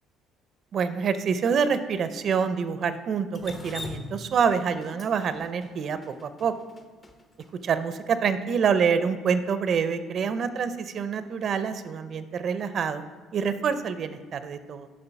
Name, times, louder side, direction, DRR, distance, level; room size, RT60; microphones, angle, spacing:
voice 1, 0.7-6.5 7.6-13.0 13.3-14.9, right 6 dB, 55° right, 11 dB, 0.5 m, -26 dB
Drip, 3.3-7.5, left 3 dB, 35° left, 0.9 m, -41 dB
6.7 x 5.2 x 5.8 m, 1.5 s
supercardioid pair, 85°, 0 cm